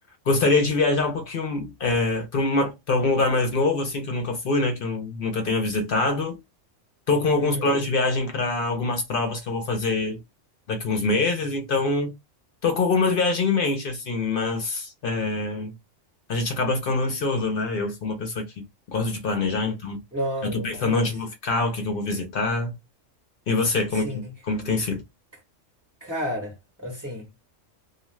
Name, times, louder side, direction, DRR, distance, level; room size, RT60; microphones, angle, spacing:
voice 1, 0.3-6.4 7.1-10.2 10.7-12.1 12.6-15.7 16.3-18.4 18.9-20.0 20.4-22.8 23.5-25.0, left 3 dB, 55° left, 0.7 m, -24 dB
voice 2, 7.3-7.7 20.1-21.1 23.9-24.2 26.0-27.3, equal, 15° right, 0.6 m, -32 dB
2.4 x 2.2 x 3.1 m
omnidirectional pair, 1.4 m